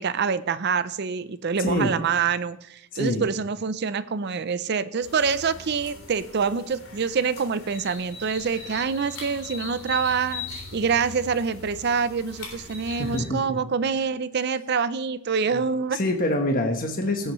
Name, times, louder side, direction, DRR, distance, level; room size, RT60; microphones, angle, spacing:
voice 1, 0.0-16.0, right 5 dB, 55° right, 14 dB, 0.5 m, -26 dB
voice 2, 1.6-1.9 2.9-3.2 13.0-13.6 15.5-15.6 15.9-17.3, left 1 dB, 45° left, 3 dB, 1.2 m, -25 dB
sound 1, 5.0-13.2, left 3 dB, 90° left, 3.4 m, -40 dB
16.5 x 8.1 x 3.1 m, 0.76 s
head